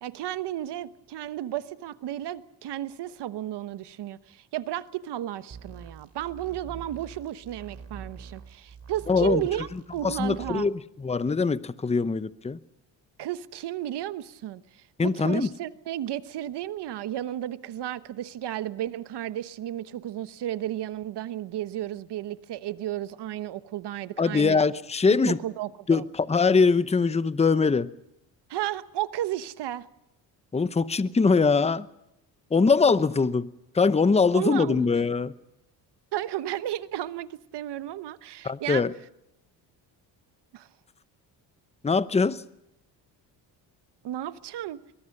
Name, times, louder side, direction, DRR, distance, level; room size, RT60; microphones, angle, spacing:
voice 1, 0.0-10.7 13.2-24.6 25.3-26.0 28.5-29.8 34.3-34.9 36.1-38.8 40.5-40.7 44.0-44.8, right 12 dB, 70° right, 1.2 m, -33 dB
sound 1, 5.5-10.5, right 5 dB, 35° right, 3.9 m, -44 dB
voice 2, 9.1-9.4 10.0-12.6 15.0-15.5 24.2-25.4 25.9-27.9 30.5-31.9 32.5-33.5 33.7-35.3 38.4-38.9 41.8-42.4, left 4 dB, 15° left, 0.8 m, -22 dB
23.0 x 22.0 x 6.6 m
cardioid pair, 90°, 43 cm